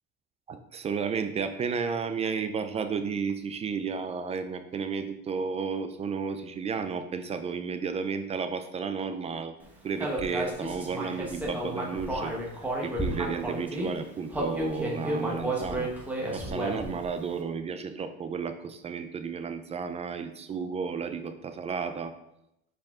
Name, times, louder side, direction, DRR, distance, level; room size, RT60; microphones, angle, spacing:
voice 1, 0.5-9.5 9.8-12.3 12.8-15.9 16.3-22.1, right 5 dB, 25° right, 9 dB, 0.3 m, -32 dB
Human voice, 10.0-13.9 14.3-17.0, right 1 dB, 5° right, 1.0 m, -32 dB
7.6 x 4.6 x 3.5 m, 0.81 s
cardioid pair, 160°, 29 cm